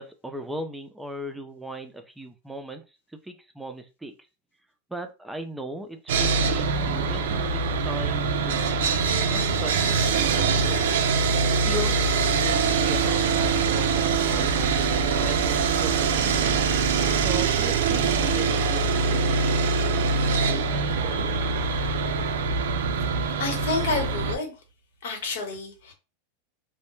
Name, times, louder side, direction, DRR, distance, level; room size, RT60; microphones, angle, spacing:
voice 1, 0.0-2.8 3.2-4.1 4.9-9.0 9.3-10.8 11.5-12.0 12.3-16.6 17.2-21.3, equal, 5° right, 6 dB, 0.4 m, -38 dB
Sawing, 6.1-24.4, right 4 dB, 85° right, 0.3 m, -23 dB
voice 2, 23.4-24.5 25.0-25.9, left 3 dB, 80° left, 3 dB, 1.0 m, -29 dB
2.1 x 2.0 x 3.0 m, 0.29 s
supercardioid pair, 145°, 0 cm